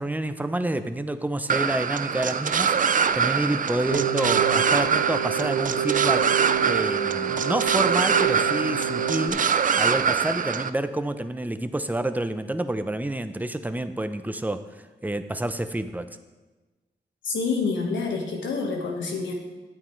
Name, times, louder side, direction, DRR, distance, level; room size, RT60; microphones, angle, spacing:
voice 1, 0.0-6.3 6.7-9.4 9.8-14.6 15.0-16.1, right 1 dB, 10° right, 10 dB, 0.7 m, -28 dB
sound 1, 1.5-10.7, right 6 dB, 45° right, 0.4 m, -24 dB
Keyboard (musical), 3.9-9.3, right 9 dB, 90° right, 0.7 m, -28 dB
voice 2, 17.2-19.3, left 4 dB, 90° left, 1 dB, 1.4 m, -27 dB
11.0 x 8.6 x 3.2 m, 1.2 s
cardioid pair, 50°, 19 cm